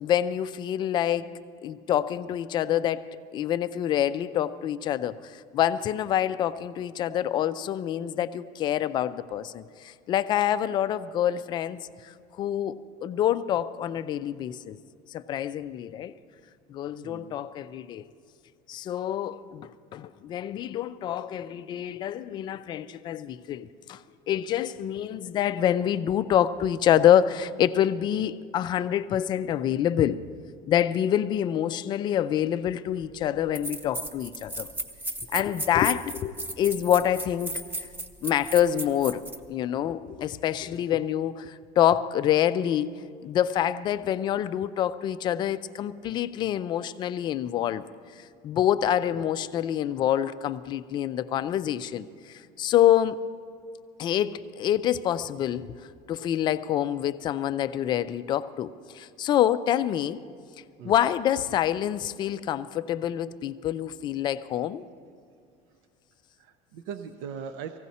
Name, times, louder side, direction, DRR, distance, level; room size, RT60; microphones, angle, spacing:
voice 1, 0.0-1.3 1.6-3.1 3.3-12.1 12.4-14.8 15.1-16.1 16.7-18.1 18.7-24.0 24.3-30.2 30.7-34.7 35.3-37.6 38.2-39.2 39.5-42.9 43.2-47.8 48.2-53.2 54.0-55.7 56.1-60.2 60.8-64.8, left 11 dB, 30° left, 14 dB, 0.3 m, -26 dB
voice 2, 17.0-17.4 49.2-49.3 60.8-61.0 62.2-62.5 66.4-67.8, right 7 dB, 80° right, 8 dB, 0.7 m, -40 dB
sound 1, 33.0-33.1 33.5-39.4, right 1 dB, 10° right, 0.8 m, -35 dB
19.0 x 15.5 x 4.2 m, 2.3 s
cardioid pair, 175°, 16 cm